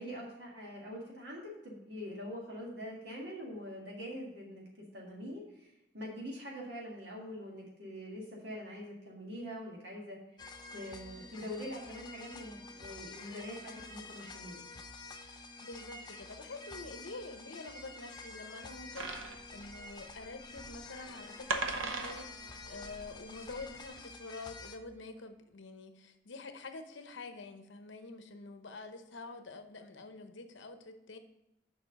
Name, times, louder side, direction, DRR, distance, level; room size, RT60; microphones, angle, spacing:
voice 1, 0.0-4.7 4.9-10.4 10.7-14.7, equal, 60° right, -3 dB, 1.8 m, -44 dB
sound 1, 10.4-24.8, left 3 dB, 20° left, 0.5 m, -49 dB
voice 2, 15.6-31.2, left 3 dB, 75° left, 7 dB, 0.8 m, -47 dB
sound 2, 19.0-23.9, right 3 dB, 90° right, 0.7 m, -40 dB
sound 3, 20.4-22.9 23.1-23.2, left 1 dB, 15° right, 1.0 m, -60 dB
6.9 x 4.9 x 6.4 m, 0.87 s
head